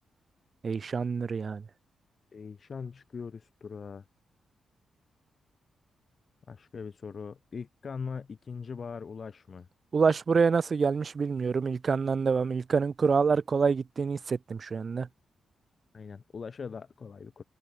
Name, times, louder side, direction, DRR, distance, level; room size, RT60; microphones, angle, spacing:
voice 1, 0.6-1.6 9.9-15.1, right 5 dB, 35° right, 1.0 m, -26 dB
voice 2, 2.3-4.0 6.5-9.7 15.9-17.4, left 5 dB, 35° left, 6.2 m, -41 dB
wide cardioid pair, 170°, 0 cm